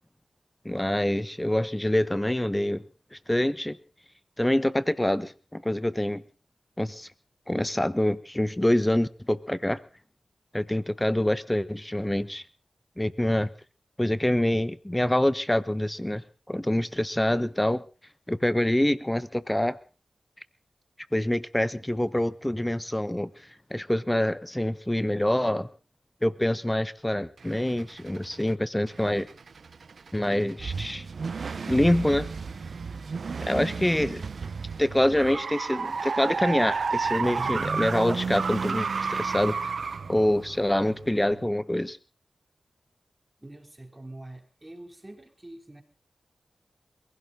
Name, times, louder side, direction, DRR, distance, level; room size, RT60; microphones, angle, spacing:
voice 1, 0.6-2.8 3.1-3.8 4.4-6.2 6.8-7.1 7.5-9.8 10.5-12.4 13.0-13.5 14.0-17.8 18.3-19.8 21.1-23.3 23.7-25.7 26.2-29.3 30.1-31.0 31.7-32.3 33.4-34.2 34.8-39.7 40.1-42.0, left 1 dB, 15° left, 16 dB, 1.2 m, -26 dB
sound 1, 27.4-28.5 28.9-41.5, right 5 dB, 75° right, 0.9 m, -32 dB
voice 2, 43.4-45.8, right 1 dB, 20° right, 6 dB, 3.3 m, -45 dB
22.5 x 16.5 x 3.9 m, 0.35 s
cardioid pair, 45°, 0 cm